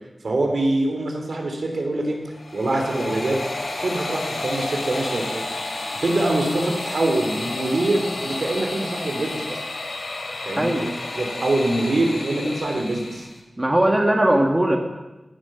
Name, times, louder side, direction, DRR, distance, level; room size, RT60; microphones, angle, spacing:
voice 1, 0.2-2.2 2.5-3.4 3.7-9.6 10.4-10.8 11.1-13.3, right 2 dB, 70° right, 2 dB, 3.5 m, -24 dB
sound 1, 2.3-13.4, left 2 dB, 65° left, 2.9 m, -31 dB
voice 2, 13.6-14.8, right 1 dB, 20° right, 2 dB, 1.7 m, -19 dB
15.5 x 12.0 x 5.8 m, 1.1 s
wide cardioid pair, 85°, 0 cm